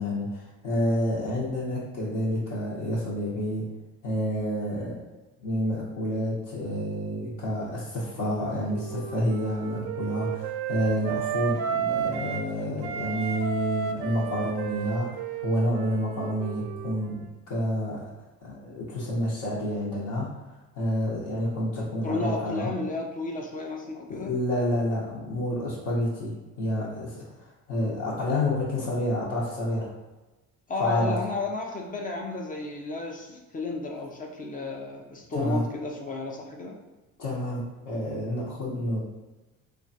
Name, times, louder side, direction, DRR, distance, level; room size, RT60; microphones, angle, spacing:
voice 1, 0.0-3.6 4.0-5.0 5.4-17.2 17.5-18.0 18.4-22.7 24.1-29.9 30.8-31.2 35.3-35.6 37.2-39.0, equal, 65° left, -8 dB, 0.9 m, -29 dB
Wind instrument woodwind instrument, 8.1-12.5 12.8-17.3, right 8 dB, 70° right, 0.5 m, -33 dB
voice 2, 22.0-24.3 30.7-36.8, left 2 dB, 25° left, 1 dB, 0.4 m, -32 dB
3.2 x 2.3 x 2.6 m, 1.1 s
cardioid pair, 100°, 31 cm